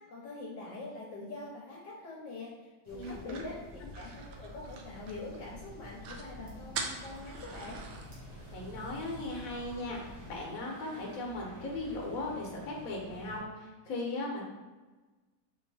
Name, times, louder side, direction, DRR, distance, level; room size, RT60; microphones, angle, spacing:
voice 1, 0.1-7.8, left 2 dB, 70° left, -3 dB, 1.4 m, -44 dB
sound 1, 2.8-10.4, equal, 60° right, 1.6 m, -49 dB
voice 2, 2.9-3.4 8.5-10.0 10.3-14.4, left 2 dB, 55° left, -1 dB, 1.2 m, -37 dB
sound 2, 3.0-5.4 5.7-5.8 6.0-6.3 6.7-8.1, right 5 dB, 75° right, 0.8 m, -42 dB
sound 3, 7.0-13.4, right 1 dB, 25° right, 1.5 m, -52 dB
4.6 x 2.8 x 4.1 m, 1.2 s
omnidirectional pair, 2.1 m